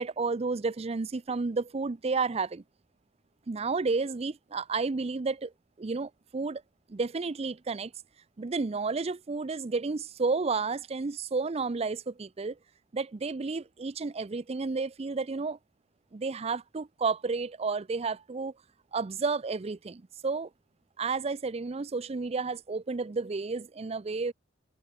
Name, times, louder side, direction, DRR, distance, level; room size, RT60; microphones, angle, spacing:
voice 1, 0.0-2.6 3.5-5.5 5.8-6.6 6.9-7.9 8.4-12.6 12.9-15.6 16.1-18.5 18.9-20.5 21.0-24.3, right 4 dB, 35° right, 0.5 m, -31 dB
head